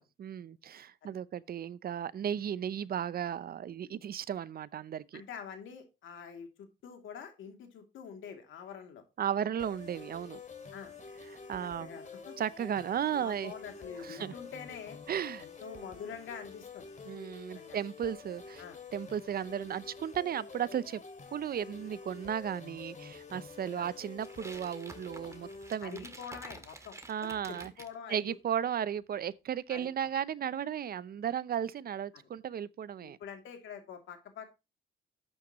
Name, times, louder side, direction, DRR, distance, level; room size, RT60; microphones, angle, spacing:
voice 1, 0.0-5.2 9.2-10.4 11.5-11.9 12.4-13.5 14.0-14.3 15.1-15.5 17.1-18.6 18.9-21.0 21.3-26.0 27.1-27.7 28.1-33.2, right 9 dB, 50° right, 0.6 m, -35 dB
voice 2, 5.1-9.0 10.7-10.9 11.8-12.3 13.0-15.0 15.4-16.9 17.5-17.8 18.6-18.8 23.7-23.9 25.8-28.4 29.7-29.9 33.0-34.5, left 7 dB, 80° left, 2.7 m, -46 dB
sound 1, 9.6-25.8, left 4 dB, 40° left, 2.4 m, -48 dB
sound 2, 24.2-27.9, right 2 dB, 15° right, 1.7 m, -50 dB
12.5 x 8.7 x 3.0 m
cardioid pair, 90°, 20 cm